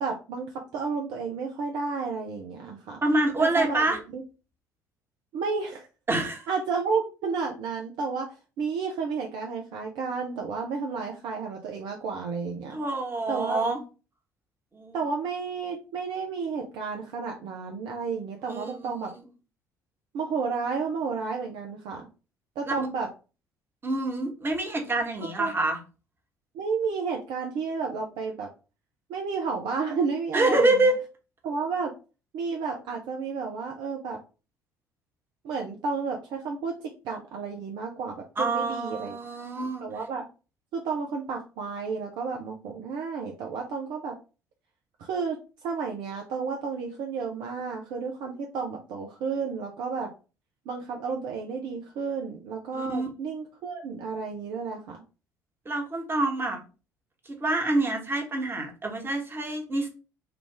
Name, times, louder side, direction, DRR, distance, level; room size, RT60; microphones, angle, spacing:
voice 1, 0.0-3.0 3.4-4.2 5.3-5.9 6.5-12.8 13.3-13.6 14.9-19.1 20.1-22.1 22.6-23.1 25.2-25.5 26.5-28.5 29.1-30.9 31.4-31.9 32.3-34.2 35.4-39.2 39.8-40.2 40.7-44.2 45.0-50.1 50.7-55.0, right 5 dB, 55° right, 2 dB, 0.5 m, -32 dB
voice 2, 3.0-4.0 6.1-6.4 12.7-13.8 14.7-15.0 18.5-19.1 22.7-22.9 23.8-25.8 30.3-31.0 38.4-39.8 52.7-53.1 55.6-56.6 57.4-59.9, right 2 dB, 25° right, 2 dB, 1.1 m, -26 dB
3.3 x 2.4 x 3.7 m, 0.33 s
figure-of-eight pair, 55°, 10 cm